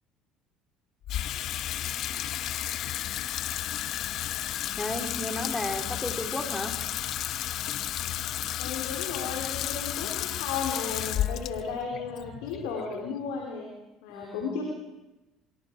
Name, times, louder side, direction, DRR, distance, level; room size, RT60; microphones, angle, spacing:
Water tap faucet / Sink (filling or washing), 1.0-13.4, left 12 dB, 60° left, 0.7 m, -33 dB
voice 1, 4.8-6.8 14.1-14.6, left 1 dB, 15° left, 3 dB, 4.3 m, -34 dB
voice 2, 8.6-13.7 14.0-14.6, left 5 dB, 75° left, 0 dB, 3.7 m, -34 dB
25.0 x 23.0 x 4.6 m, 1.0 s
hypercardioid pair, 70°, 0 cm